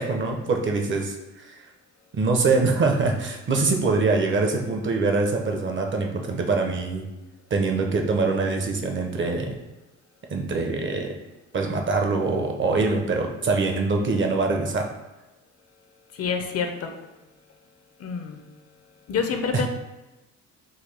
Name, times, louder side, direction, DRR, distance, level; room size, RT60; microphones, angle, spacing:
voice 1, 0.0-1.7 2.1-7.1 7.5-9.6 10.3-11.1 11.5-14.9 19.5-19.7, right 3 dB, 40° right, 3 dB, 0.6 m, -24 dB
voice 2, 16.1-17.0 18.0-18.5 19.1-19.7, left 6 dB, 55° left, 5 dB, 0.5 m, -27 dB
3.9 x 2.3 x 3.3 m, 1.1 s
cardioid pair, 90°, 30 cm